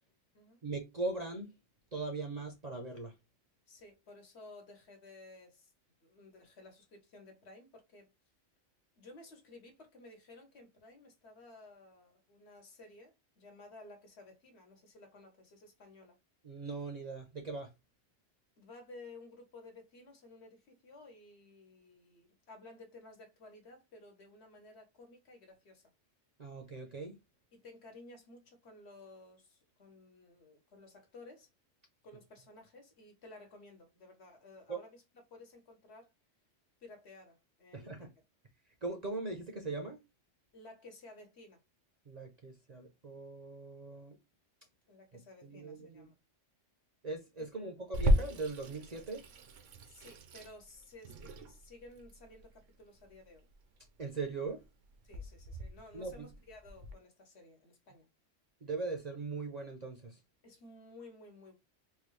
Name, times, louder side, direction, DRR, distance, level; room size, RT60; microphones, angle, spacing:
voice 1, 0.6-1.5 1.9-3.1 16.4-17.7 26.4-27.2 34.7-34.8 37.7-38.1 38.8-40.0 42.1-44.2 45.4-46.1 47.0-49.2 54.0-54.6 55.9-56.3 58.6-60.2, right 3 dB, 45° right, 0.6 m, -40 dB
voice 2, 3.7-5.7 6.0-8.1 9.0-16.2 18.6-25.8 27.5-31.5 32.0-35.0 35.3-36.1 36.8-38.2 40.5-41.6 44.9-46.2 47.5-47.7 49.8-53.5 55.0-58.1 60.4-61.5, left 2 dB, 60° left, 1.3 m, -55 dB
Water tap faucet / Sink (filling or washing), 47.9-56.9, equal, 80° right, 1.0 m, -36 dB
3.8 x 2.3 x 3.1 m
omnidirectional pair, 1.3 m